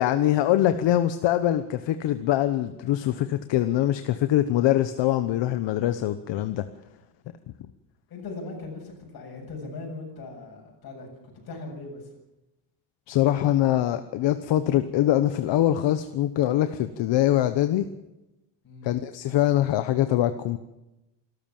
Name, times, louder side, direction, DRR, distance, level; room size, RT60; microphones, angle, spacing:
voice 1, 0.0-6.6 13.1-17.8 18.8-20.6, left 13 dB, 75° left, 10 dB, 1.1 m, -23 dB
voice 2, 8.1-11.1 11.4-12.0 18.6-18.9, left 3 dB, 55° left, 2 dB, 7.6 m, -39 dB
26.5 x 13.5 x 7.3 m, 0.96 s
cardioid pair, 165°, 44 cm